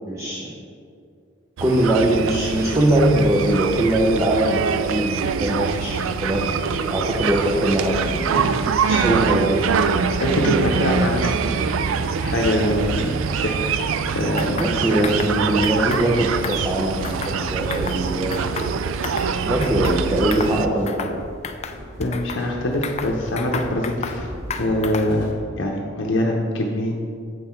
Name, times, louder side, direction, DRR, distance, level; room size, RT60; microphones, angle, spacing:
voice 1, 0.1-0.5 1.6-8.5 8.8-9.7 14.6-18.7 19.5-21.2, right 1 dB, 15° right, -3 dB, 0.7 m, -21 dB
sound 1, 1.6-20.7, right 5 dB, 80° right, 0.4 m, -24 dB
voice 2, 10.1-11.5 12.2-13.6 14.1-14.6 15.0-15.3 22.0-24.3 24.6-25.3 25.6-27.0, left 1 dB, 65° left, -1 dB, 0.7 m, -23 dB
sound 2, 14.4-14.7 15.0-15.3 15.6-16.0 16.4-17.4 17.7-18.0 18.3-19.3 19.6-20.0 20.3-20.6 20.9-21.2 21.4-22.4 22.8-24.2 24.5-25.2, left 6 dB, 35° left, 0.4 m, -32 dB
sound 3, 21.1-25.4, equal, 60° right, 2.1 m, -38 dB
7.8 x 5.7 x 4.4 m, 2.3 s
head